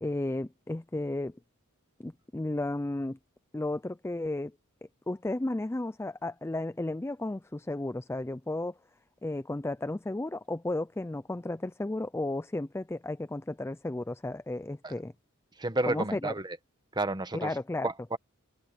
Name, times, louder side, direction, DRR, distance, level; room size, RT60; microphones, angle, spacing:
voice 1, 0.0-1.4 2.0-3.2 3.5-4.6 5.1-8.8 9.2-15.1 15.9-16.3 17.3-17.9, left 2 dB, 10° left, 0.4 m, -33 dB
voice 2, 15.5-16.6 16.9-18.2, right 2 dB, 20° right, 1.1 m, -32 dB
head